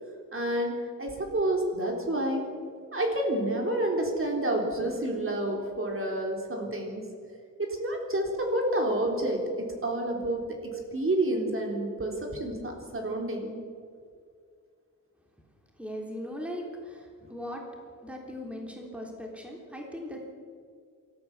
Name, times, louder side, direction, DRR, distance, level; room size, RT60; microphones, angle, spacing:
voice 1, 0.3-2.4 2.9-7.0 7.6-13.6, right 1 dB, 40° right, 1 dB, 3.6 m, -29 dB
voice 2, 15.8-17.6 18.0-20.2, equal, 5° right, 0 dB, 3.5 m, -39 dB
27.0 x 14.0 x 7.3 m, 2.2 s
wide cardioid pair, 155°, 32 cm